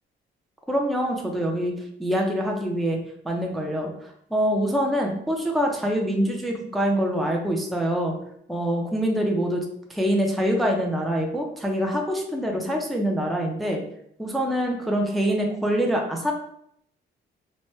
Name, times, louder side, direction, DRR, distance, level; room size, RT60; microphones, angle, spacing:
voice 1, 0.7-1.7 2.0-8.1 8.5-9.6 9.9-13.8 14.2-16.3, equal, ahead, 0 dB, 0.5 m, -25 dB
3.1 x 2.2 x 3.1 m, 0.72 s
cardioid pair, 90°, 20 cm